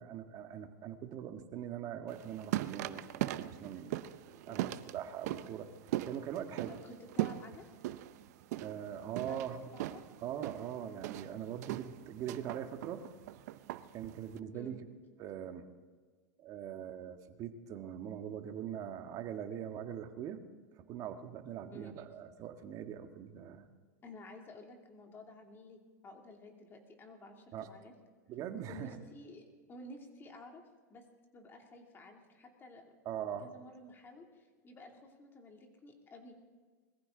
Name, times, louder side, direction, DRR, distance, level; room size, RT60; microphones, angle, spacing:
voice 1, 0.0-3.9 4.5-5.7 6.0-6.7 8.6-9.7 10.2-13.0 13.9-14.8 15.2-15.7 16.4-20.4 20.9-23.7 27.5-27.7 28.3-29.0 33.0-33.5, right 9 dB, 40° right, 6 dB, 1.6 m, -42 dB
sound 1, 2.1-14.4, right 14 dB, 65° right, 0.7 m, -40 dB
voice 2, 4.5-4.8 6.7-7.7 9.3-9.4 9.7-10.0 14.5-14.8 21.7-22.0 24.0-27.9 28.7-29.4 29.7-30.6 30.9-31.0 31.3-32.9 33.4-36.3, left 2 dB, 25° left, 2 dB, 2.7 m, -52 dB
21.5 x 14.5 x 3.9 m, 1.5 s
supercardioid pair, 130°, 9 cm